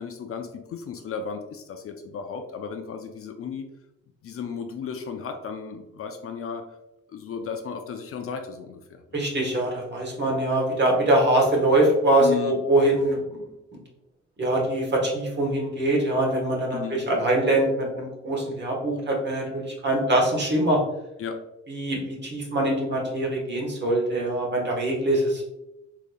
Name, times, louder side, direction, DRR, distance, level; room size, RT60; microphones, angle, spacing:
voice 1, 0.0-3.7 4.2-6.6 7.1-9.0 12.2-12.6 16.7-17.0 21.2-21.4, left 6 dB, 50° left, 6 dB, 0.4 m, -34 dB
voice 2, 9.1-13.5 14.4-20.8 21.7-25.4, right 1 dB, 35° right, -1 dB, 1.2 m, -23 dB
3.8 x 3.2 x 2.2 m, 0.90 s
cardioid pair, 90°, 30 cm